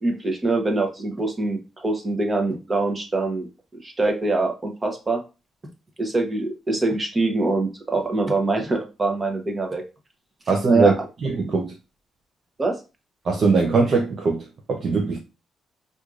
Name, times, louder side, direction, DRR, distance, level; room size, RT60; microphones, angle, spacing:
voice 1, 0.0-3.5 3.8-5.2 6.0-9.8 10.7-10.9 12.6-12.8, right 3 dB, 25° right, 0.9 m, -24 dB
voice 2, 10.5-10.9 11.2-11.7 13.3-14.4 14.7-15.2, right 4 dB, 50° right, 0.6 m, -20 dB
4.4 x 2.6 x 2.4 m
cardioid pair, 90°, 0 cm